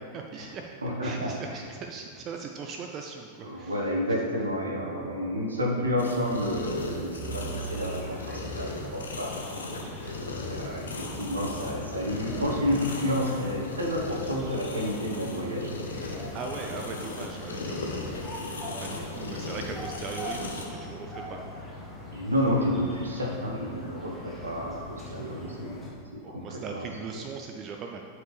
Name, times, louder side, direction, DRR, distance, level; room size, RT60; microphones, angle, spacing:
voice 1, 0.1-0.7 1.0-3.8 4.1-4.2 10.0-10.2 16.3-18.2 18.8-21.5 25.4-25.5 26.2-28.0, right 5 dB, 35° right, 3 dB, 0.5 m, -39 dB
voice 2, 0.8-1.3 3.4-9.3 10.3-15.7 18.9-19.0 22.1-25.8 26.1-26.9, equal, 75° right, -2 dB, 1.4 m, -30 dB
sound 1, 6.0-20.7, left 3 dB, 70° left, 1.0 m, -37 dB
sound 2, 7.2-25.9, equal, ahead, 1.5 m, -42 dB
11.5 x 4.7 x 3.4 m, 2.1 s
figure-of-eight pair, 90°, 0 cm